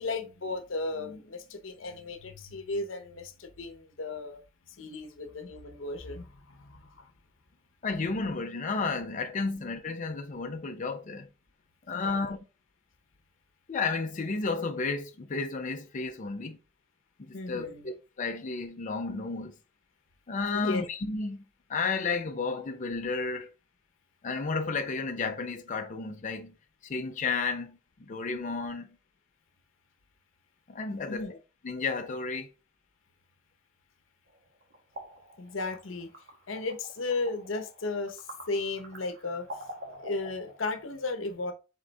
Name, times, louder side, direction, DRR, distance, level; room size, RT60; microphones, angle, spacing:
voice 1, 0.0-4.4 4.7-7.1 11.9-12.3 17.3-17.9 20.5-20.9 31.1-31.4 35.4-36.1 36.5-39.5 39.9-41.5, left 3 dB, 90° left, 0.8 m, -35 dB
voice 2, 7.8-11.3 11.9-12.4 13.7-16.6 17.2-19.5 20.3-21.4 21.7-23.5 24.2-26.5 26.8-28.9 30.7-31.4 31.6-32.5, left 4 dB, 40° left, 0.5 m, -32 dB
sound 1, 34.3-40.9, right 1 dB, 55° right, 1.3 m, -47 dB
4.0 x 3.6 x 3.3 m
head